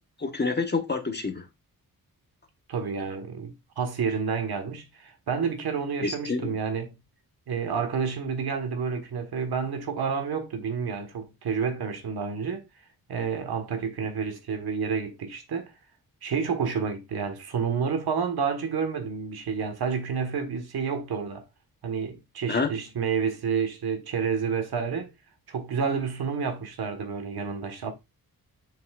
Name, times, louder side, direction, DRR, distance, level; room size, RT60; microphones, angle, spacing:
voice 1, 0.2-1.4 6.0-6.6 22.5-22.7, left 4 dB, 30° left, 1.1 m, -28 dB
voice 2, 2.7-6.9 7.5-12.7 13.1-15.7 16.2-21.4 21.8-25.1 25.5-27.9, right 6 dB, 85° right, 1.5 m, -29 dB
7.5 x 5.8 x 2.4 m
wide cardioid pair, 170°, 37 cm